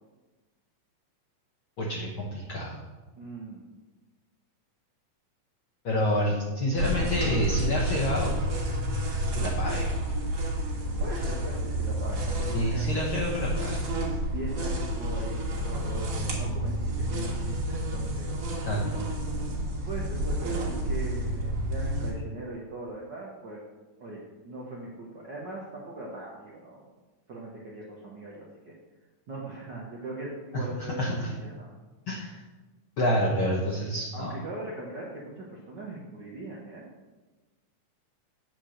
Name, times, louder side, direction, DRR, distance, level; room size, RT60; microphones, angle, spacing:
voice 1, 1.8-2.8 5.8-8.3 9.3-9.9 12.5-13.8 18.7-19.0 30.8-31.3 32.1-32.4 33.0-34.3, equal, 75° left, -2 dB, 1.2 m, -28 dB
voice 2, 3.2-3.6 10.7-13.0 14.3-18.3 18.8-18.9 19.5-23.6 24.0-26.9 27.3-28.7 29.3-31.7 34.1-36.9, right 2 dB, 80° right, -4 dB, 0.9 m, -40 dB
sound 1, 6.8-22.1, right 1 dB, 55° right, 2.3 m, -30 dB
8.7 x 4.6 x 6.3 m, 1.2 s
omnidirectional pair, 3.7 m